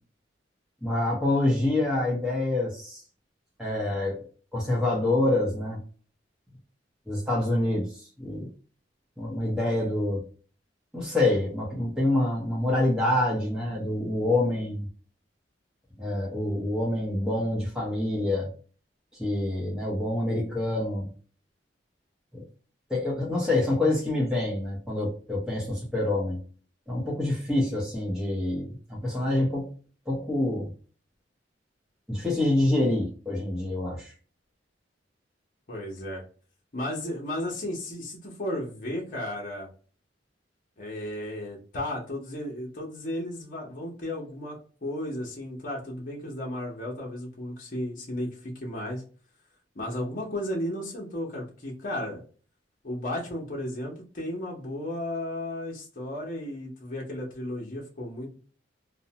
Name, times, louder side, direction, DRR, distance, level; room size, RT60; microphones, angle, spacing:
voice 1, 0.8-3.0 3.6-4.2 4.5-5.8 7.1-7.9 8.2-8.5 9.2-10.2 10.9-14.8 16.0-18.5 19.2-21.1 22.3-22.4 22.9-26.4 26.9-29.7 30.1-30.7 32.1-34.1, left 1 dB, 5° right, -5 dB, 0.8 m, -26 dB
voice 2, 35.7-36.2 36.7-39.7 40.8-49.0 49.7-52.2 52.8-58.3, left 1 dB, 45° left, -2 dB, 0.8 m, -34 dB
2.6 x 2.1 x 2.8 m, 0.39 s
head